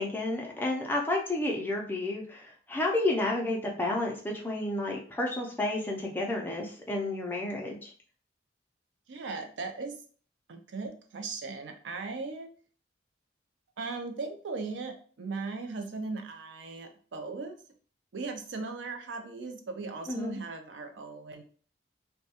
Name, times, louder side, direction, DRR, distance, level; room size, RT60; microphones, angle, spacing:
voice 1, 0.0-7.9 20.1-20.4, left 2 dB, 10° left, -1 dB, 0.4 m, -31 dB
voice 2, 9.1-10.0 10.5-12.5 13.8-17.6 18.1-21.4, right 3 dB, 75° right, 5 dB, 0.4 m, -38 dB
2.3 x 2.2 x 2.8 m, 0.44 s
head